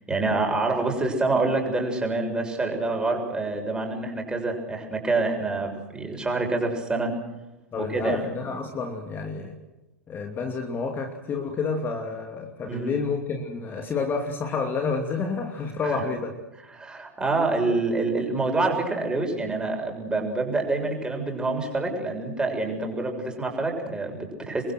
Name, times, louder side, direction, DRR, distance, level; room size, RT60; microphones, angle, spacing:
voice 1, 0.1-7.1 7.8-8.2 12.7-12.9 15.8-16.0 16.7-24.7, right 3 dB, 10° right, 2 dB, 6.9 m, -26 dB
voice 2, 7.7-9.5 10.1-16.3, left 4 dB, 25° left, 4 dB, 2.8 m, -29 dB
29.0 x 22.5 x 6.3 m, 1.0 s
figure-of-eight pair, 90°, 8 cm